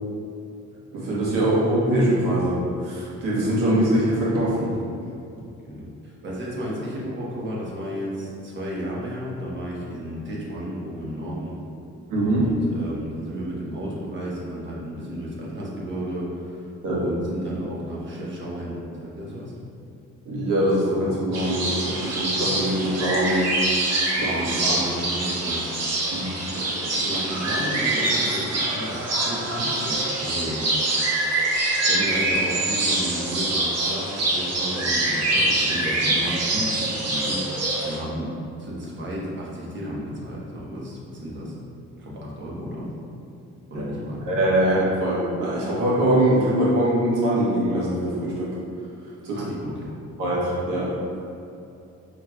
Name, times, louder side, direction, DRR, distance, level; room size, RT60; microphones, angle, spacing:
voice 1, 0.9-4.7 12.1-12.4 16.8-17.0 20.2-23.5 24.2-25.0 26.1-26.2 26.5-27.0 43.7-43.9 44.3-48.5 49.2-49.5 50.2-51.0, right 1 dB, 85° right, -6 dB, 1.3 m, -23 dB
voice 2, 5.6-11.6 12.2-19.5 24.1-25.7 27.0-30.7 31.9-38.3 38.6-41.5 42.0-42.9 43.7-44.4 49.3-49.9, equal, 40° right, -5 dB, 1.2 m, -33 dB
sound 1, 21.3-38.0, right 2 dB, 55° right, 1.0 m, -25 dB
5.7 x 3.2 x 2.3 m, 2.7 s
cardioid pair, 90°, 30 cm